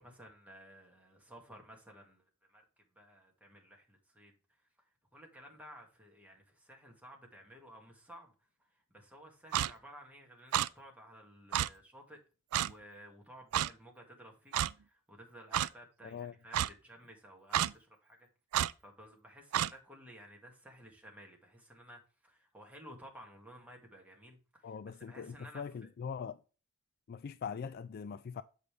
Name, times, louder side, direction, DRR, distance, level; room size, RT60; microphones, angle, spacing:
voice 1, 0.0-2.6 2.9-8.3 8.6-12.2 12.5-18.3 18.8-25.6, equal, 5° right, 2.1 m, -55 dB
Clock, 9.5-9.7 10.5-10.7 11.5-11.7 12.5-12.7 13.5-13.7 14.5-14.7 15.5-15.7 16.5-16.7 17.5-17.7 18.5-18.7 19.5-19.7, right 11 dB, 80° right, 0.3 m, -30 dB
voice 2, 16.0-16.3 24.6-26.4 27.1-28.4, left 6 dB, 45° left, 0.3 m, -42 dB
7.8 x 5.5 x 3.4 m
head